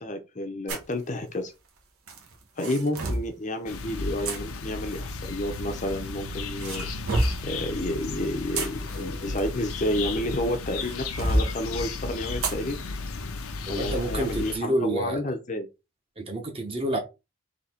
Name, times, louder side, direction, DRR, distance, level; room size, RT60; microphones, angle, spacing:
voice 1, 0.0-1.5 2.6-6.9 7.4-12.8 13.7-15.7, left 1 dB, 35° left, 0.7 m, -30 dB
sound 1, 0.7-0.9 2.1-3.3 4.2-4.4 5.5-6.1 6.6-7.5 8.3-10.3 10.8-11.5 12.4-12.6 13.1-13.2 13.8-14.0, right 1 dB, 75° right, 1.3 m, -28 dB
sound 2, 3.7-14.6, left 3 dB, 75° left, 0.7 m, -34 dB
voice 2, 13.7-15.2 16.2-17.0, right 1 dB, 25° right, 1.0 m, -28 dB
4.1 x 2.9 x 4.3 m
head